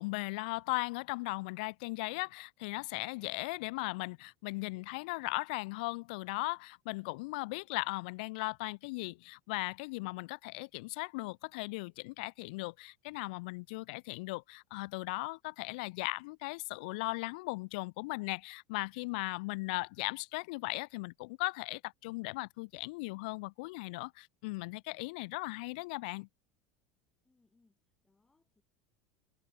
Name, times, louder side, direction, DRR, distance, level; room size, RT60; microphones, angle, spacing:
voice 1, 0.0-26.3, left 25 dB, 75° left, 0.4 m, -38 dB
voice 2, 27.2-28.6, left 3 dB, 10° left, 7.7 m, -73 dB
supercardioid pair, 120°, 5 cm